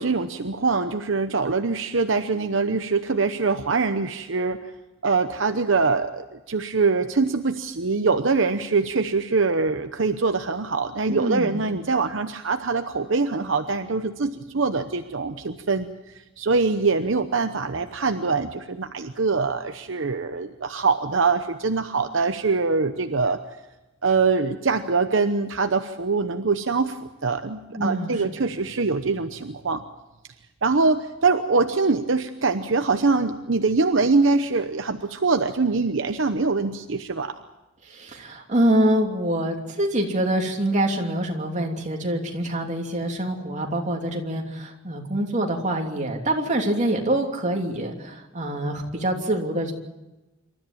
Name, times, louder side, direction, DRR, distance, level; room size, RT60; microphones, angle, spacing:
voice 1, 0.0-4.6 5.0-23.4 24.0-29.8 30.6-37.3, right 4 dB, 70° right, 8 dB, 0.9 m, -23 dB
voice 2, 11.1-11.6 27.7-28.5 37.8-49.7, right 1 dB, 40° right, 2 dB, 3.0 m, -25 dB
27.0 x 13.5 x 8.9 m, 1.0 s
head